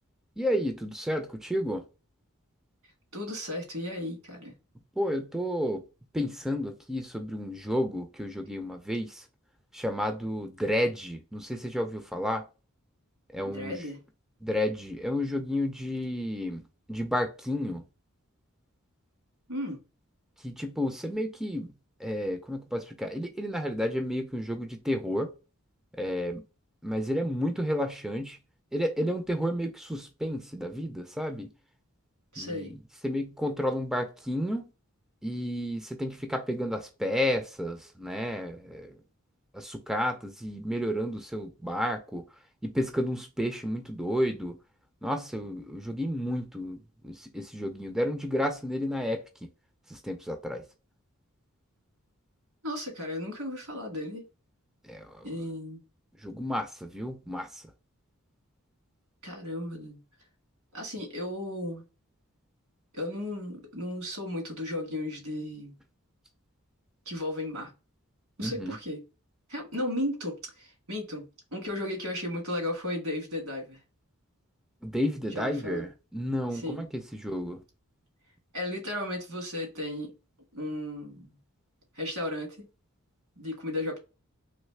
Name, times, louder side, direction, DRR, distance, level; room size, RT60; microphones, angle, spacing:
voice 1, 0.4-1.8 5.0-5.8 6.1-9.2 9.7-12.4 13.3-13.8 14.4-16.6 16.9-17.9 20.4-21.7 22.0-25.3 26.0-26.4 26.8-28.4 28.7-31.5 32.4-32.8 33.0-34.7 35.2-39.0 39.5-42.2 42.6-44.6 45.0-49.2 49.9-50.6 54.8-55.3 56.2-57.7 68.4-68.8 74.8-77.6, equal, 5° right, 0.4 m, -31 dB
voice 2, 3.1-4.5 13.4-14.0 19.5-19.8 32.3-32.7 52.6-54.2 55.2-55.8 59.2-60.0 60.7-61.8 62.9-65.7 67.0-67.7 68.4-69.0 69.5-73.8 75.3-75.9 76.6-76.8 78.5-80.1 80.5-81.4 81.9-82.7 83.4-84.0, left 1 dB, 70° right, 1.6 m, -35 dB
3.2 x 3.0 x 3.2 m
head